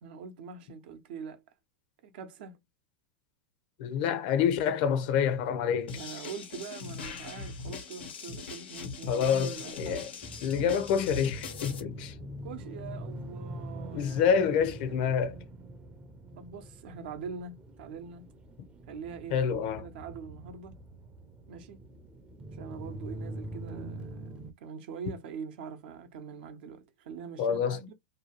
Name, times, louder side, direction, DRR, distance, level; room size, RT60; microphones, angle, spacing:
voice 1, 0.0-1.4 2.0-2.6 5.9-10.1 12.4-14.2 14.5-15.1 16.4-18.3 18.9-20.8 21.5-21.8 22.6-24.3 24.6-27.9, right 6 dB, 70° right, 0.7 m, -43 dB
voice 2, 3.8-5.9 9.1-10.1 10.4-12.1 13.9-15.4 19.3-19.8 27.4-27.8, left 7 dB, 60° left, 0.7 m, -27 dB
sound 1, 5.9-11.8, left 4 dB, 90° left, 1.3 m, -40 dB
sound 2, 10.2-24.5, right 1 dB, 20° right, 0.6 m, -44 dB
2.7 x 2.3 x 2.9 m
hypercardioid pair, 115°, 6 cm